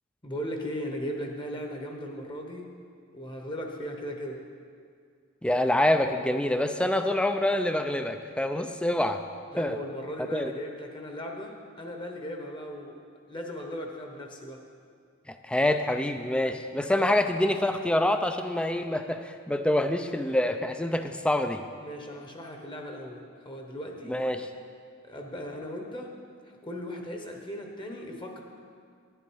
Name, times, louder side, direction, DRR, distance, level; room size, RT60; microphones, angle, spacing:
voice 1, 0.2-2.7 3.1-4.4 9.5-13.0 13.3-14.6 21.8-24.2 25.0-26.1 26.4-28.4, equal, 20° left, 2 dB, 0.9 m, -37 dB
voice 2, 5.4-9.2 9.6-9.8 10.3-10.5 15.3-21.6 24.1-24.5, left 1 dB, 5° left, 8 dB, 0.3 m, -26 dB
10.5 x 10.0 x 4.6 m, 2.2 s
head